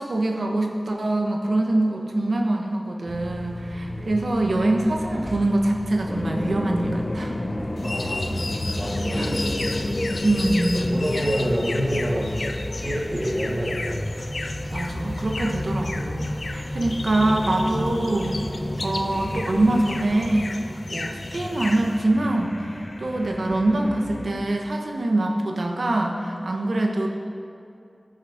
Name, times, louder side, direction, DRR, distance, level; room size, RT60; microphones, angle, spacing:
voice 1, 0.0-7.3 9.1-9.5 10.2-10.9 11.1-11.2 14.7-18.4 18.8-27.1, right 1 dB, 90° right, 2 dB, 1.2 m, -24 dB
sound 1, 3.1-20.4, left 1 dB, 5° right, 1.6 m, -38 dB
voice 2, 3.9-4.2 7.8-8.4 8.8-9.4 10.7-12.5 12.8-14.0, equal, 35° right, -6 dB, 2.1 m, -27 dB
sound 2, 6.1-24.4, left 1 dB, 40° left, 0.7 m, -31 dB
sound 3, 7.8-22.0, left 2 dB, 75° left, 0.6 m, -35 dB
15.0 x 6.4 x 5.1 m, 2.5 s
wide cardioid pair, 65°, 0 cm